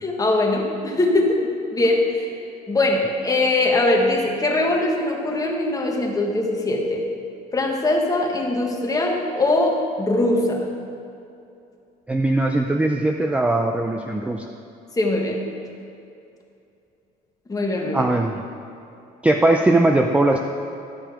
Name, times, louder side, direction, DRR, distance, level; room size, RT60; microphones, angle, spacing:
voice 1, 0.0-1.4 1.7-2.3 2.7-7.1 7.5-10.7 15.0-15.4 17.5-18.0, left 2 dB, 20° left, 0 dB, 1.5 m, -21 dB
voice 2, 12.1-14.4 17.9-18.4 19.2-20.4, right 2 dB, 10° right, 3 dB, 0.4 m, -19 dB
12.5 x 5.8 x 5.0 m, 2.6 s
cardioid pair, 110°, 17 cm